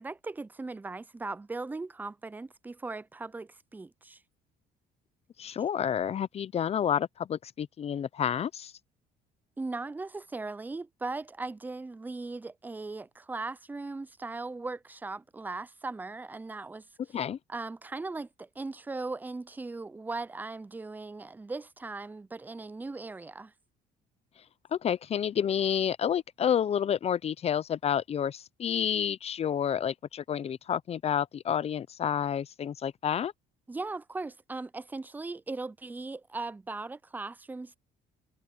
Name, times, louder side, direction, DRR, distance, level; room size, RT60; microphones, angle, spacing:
voice 1, 0.0-4.2 9.6-16.9 17.5-23.5 33.7-37.8, right 3 dB, 10° right, 0.4 m, -38 dB
voice 2, 5.4-8.7 17.1-17.4 24.7-33.3, left 9 dB, 40° left, 0.6 m, -29 dB
cardioid pair, 110°, 17 cm